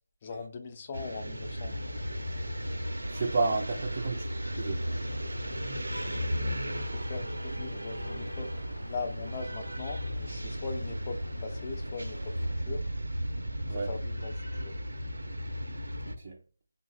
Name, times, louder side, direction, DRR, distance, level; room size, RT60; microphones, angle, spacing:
voice 1, 0.2-1.7 6.7-12.8 13.7-14.8, left 4 dB, 25° left, 0.5 m, -40 dB
sound 1, 0.9-16.2, equal, 75° right, 0.7 m, -36 dB
sound 2, 1.4-12.7, left 1 dB, 85° left, 0.5 m, -41 dB
voice 2, 3.1-4.3 4.6-4.9 13.7-13.9 16.1-16.4, right 3 dB, 30° right, 0.4 m, -31 dB
3.1 x 2.0 x 4.0 m
figure-of-eight pair, 165°, 0 cm